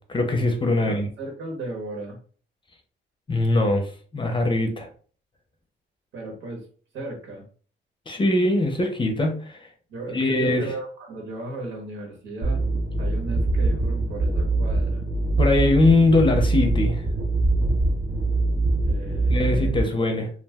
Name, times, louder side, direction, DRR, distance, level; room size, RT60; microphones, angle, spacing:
voice 1, 0.1-1.1 3.3-4.9 8.1-9.6 10.1-10.7 15.4-17.0 19.3-20.3, left 2 dB, 25° left, 0.6 m, -21 dB
voice 2, 0.7-2.2 6.1-6.7 6.9-7.4 9.9-12.6 13.0-15.0 18.8-19.8, right 2 dB, 70° right, 1.2 m, -36 dB
sound 1, 12.4-19.8, right 2 dB, 45° right, 0.6 m, -23 dB
2.3 x 2.1 x 3.4 m
cardioid pair, 90°, 20 cm